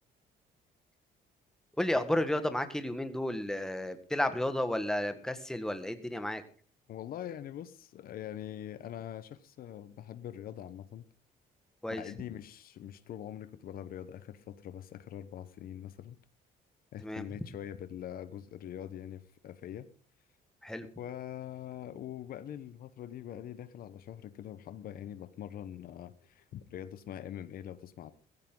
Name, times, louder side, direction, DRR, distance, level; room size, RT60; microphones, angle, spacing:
voice 1, 1.8-6.4 11.8-12.0 17.0-17.3 20.6-20.9, left 1 dB, 5° left, 9 dB, 1.5 m, -32 dB
voice 2, 6.9-11.1 11.9-16.2 16.9-19.9 21.0-28.1, left 10 dB, 60° left, 13 dB, 1.0 m, -43 dB
15.5 x 15.0 x 3.9 m, 0.41 s
cardioid pair, 110°, 17 cm